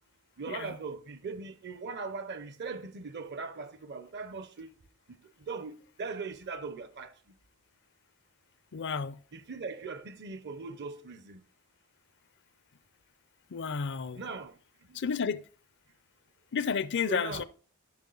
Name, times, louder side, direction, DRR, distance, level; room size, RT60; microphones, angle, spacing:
voice 1, 0.4-4.7 5.1-7.2 9.3-11.4 14.1-14.6 14.9-15.0 17.0-17.4, right 4 dB, 50° right, 0.6 m, -40 dB
voice 2, 8.7-9.2 13.5-14.2 14.9-15.4 16.5-17.4, left 6 dB, 55° left, 0.5 m, -31 dB
10.5 x 6.0 x 3.9 m
head